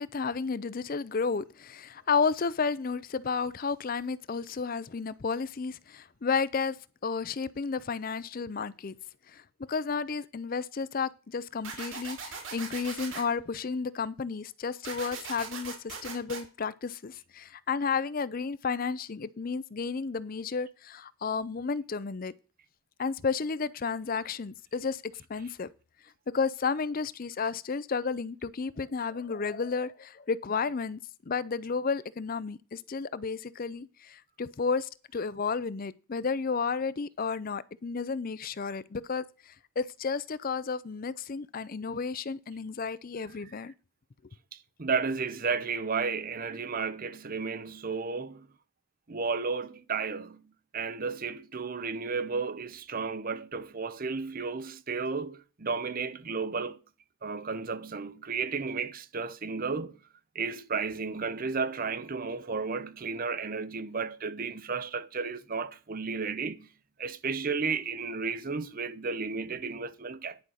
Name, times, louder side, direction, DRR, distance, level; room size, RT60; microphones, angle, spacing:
voice 1, 0.0-6.8 7.0-9.0 9.3-9.4 9.7-22.3 23.0-25.0 25.3-25.7 26.3-31.0 31.3-43.7, left 5 dB, 40° left, 0.5 m, -32 dB
sound 1, 11.6-13.2 14.8-16.4, right 5 dB, 60° right, 2.8 m, -40 dB
voice 2, 44.5-48.5 49.1-56.8 57.2-60.0 60.3-66.7 67.0-70.4, right 4 dB, 40° right, 0.6 m, -33 dB
10.5 x 5.5 x 6.3 m
head